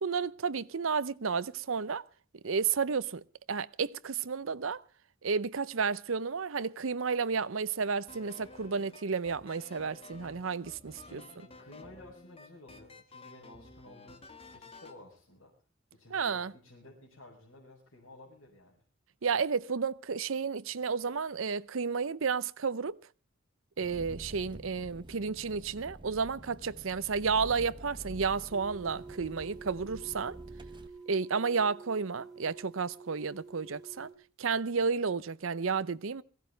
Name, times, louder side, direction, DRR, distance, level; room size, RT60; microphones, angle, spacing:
voice 1, 0.0-2.0 2.4-3.2 3.5-4.8 5.2-11.2 16.1-16.5 19.2-23.0 23.8-30.4 31.1-34.1 34.4-36.2, right 5 dB, 75° right, 0.7 m, -32 dB
sound 1, 8.1-15.0, left 3 dB, 30° left, 1.8 m, -52 dB
voice 2, 11.1-15.5 15.9-18.8, left 2 dB, 70° left, 5.5 m, -54 dB
Engine, 23.8-30.9, right 1 dB, 25° right, 1.2 m, -48 dB
sound 2, 28.5-34.1, right 4 dB, ahead, 5.3 m, -49 dB
22.0 x 16.0 x 3.3 m
head